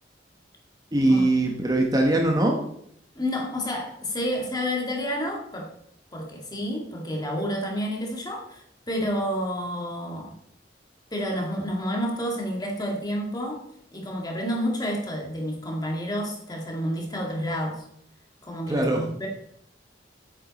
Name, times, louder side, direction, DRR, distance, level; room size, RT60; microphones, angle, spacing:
voice 1, 0.9-2.6 18.7-19.0, right 1 dB, 20° right, 1 dB, 1.0 m, -21 dB
voice 2, 3.2-5.7 6.1-10.3 11.1-13.6 13.9-17.8 18.4-19.3, equal, 20° left, 0 dB, 1.8 m, -29 dB
8.9 x 7.8 x 4.1 m, 0.72 s
head